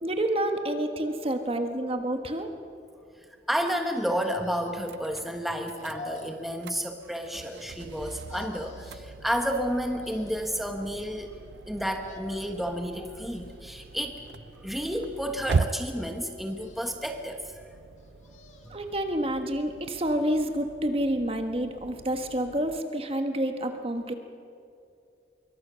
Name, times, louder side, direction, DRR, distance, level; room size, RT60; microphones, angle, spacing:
voice 1, 0.0-2.5 18.7-24.1, right 1 dB, 35° right, 6 dB, 1.4 m, -28 dB
voice 2, 3.5-11.4 11.7-14.2 14.6-17.7, equal, ahead, 4 dB, 1.3 m, -31 dB
sound 1, 4.2-5.0 5.7-6.5 7.2-8.0 8.3-9.2 9.8-10.6 11.8-12.7 13.2-13.9 14.6-15.4 16.4-17.2 17.9-18.9 19.2-19.3, left 2 dB, 40° left, 2.2 m, -47 dB
sound 2, 4.8-22.8, right 4 dB, 75° right, 0.5 m, -39 dB
25.5 x 23.0 x 6.4 m, 2.5 s
head